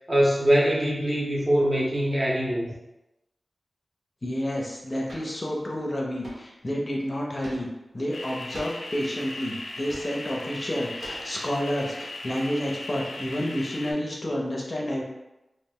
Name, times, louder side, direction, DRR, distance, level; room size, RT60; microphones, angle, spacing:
voice 1, 0.1-2.7, equal, 30° right, -4 dB, 0.7 m, -23 dB
voice 2, 4.2-7.7 7.9-15.0, equal, 35° left, -2 dB, 0.5 m, -30 dB
sound 1, 5.1-5.4 6.2-6.5 7.4-7.9 8.5-8.9 9.7-10.3 11.0-11.7, right 1 dB, 75° right, 0.5 m, -43 dB
sound 2, 8.1-13.9, left 2 dB, 85° left, 0.4 m, -38 dB
2.3 x 2.0 x 3.6 m, 0.95 s
wide cardioid pair, 80°, 0 cm